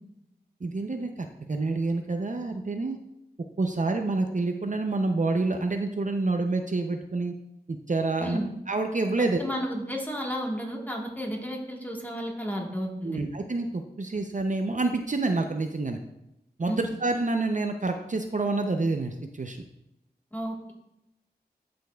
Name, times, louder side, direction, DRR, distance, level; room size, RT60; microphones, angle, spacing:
voice 1, 0.6-3.0 3.6-7.3 7.7-8.4 8.7-9.4 13.0-16.0 16.6-19.6, right 3 dB, 50° right, 5 dB, 0.5 m, -28 dB
voice 2, 9.2-13.2 16.7-16.9 20.3-20.7, equal, 10° left, 0 dB, 1.3 m, -32 dB
11.5 x 5.2 x 2.3 m, 0.86 s
wide cardioid pair, 60°, 17 cm